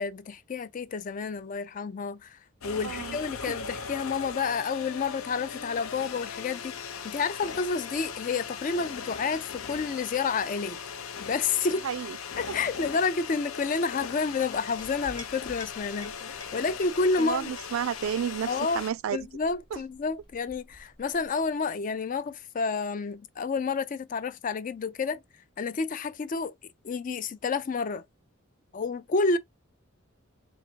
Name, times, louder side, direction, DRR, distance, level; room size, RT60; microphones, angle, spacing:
voice 1, 0.0-2.4 2.6-10.8 11.2-11.8 12.4-17.5 18.5-18.8 19.1-25.2 25.6-26.5 26.8-28.0 28.7-29.4, left 4 dB, 40° left, 0.4 m, -30 dB
sound 1, 2.6-18.9, left 6 dB, 85° left, 0.6 m, -39 dB
voice 2, 2.8-3.6 11.8-12.2 12.5-12.6 17.2-19.2 19.7-19.8, right 8 dB, 75° right, 0.3 m, -32 dB
Chink clink, 14.5-21.6, left 1 dB, 20° left, 1.0 m, -51 dB
3.9 x 3.4 x 2.8 m
head